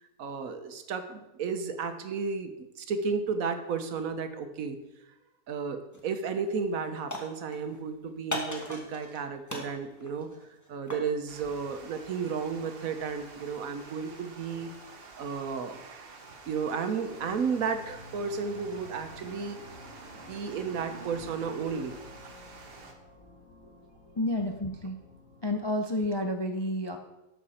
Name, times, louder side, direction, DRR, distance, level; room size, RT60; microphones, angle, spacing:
voice 1, 0.2-2.5 2.8-4.8 5.5-10.3 10.7-14.7 15.2-16.1 16.5-19.7 20.2-22.0, right 5 dB, 70° right, 8 dB, 1.2 m, -33 dB
sound 1, 5.9-6.2 6.5-7.8 8.3-9.2 9.5-11.1, left 1 dB, 10° left, 1.2 m, -38 dB
Water, 11.3-22.9, right 4 dB, 45° right, 1.2 m, -48 dB
sound 2, 17.1-25.6, left 3 dB, 65° left, 2.5 m, -52 dB
voice 2, 24.2-25.0 25.4-27.0, left 1 dB, 35° left, 4 dB, 0.4 m, -30 dB
12.5 x 5.8 x 4.2 m, 0.98 s
omnidirectional pair, 1.6 m